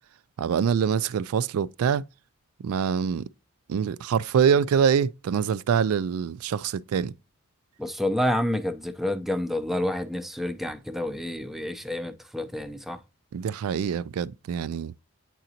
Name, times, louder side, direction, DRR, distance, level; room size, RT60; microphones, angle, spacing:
voice 1, 0.4-2.1 2.6-3.2 3.7-7.1 13.3-14.9, right 7 dB, 75° right, 0.3 m, -25 dB
voice 2, 7.8-13.0, left 1 dB, ahead, 0.5 m, -29 dB
9.1 x 3.8 x 2.8 m
head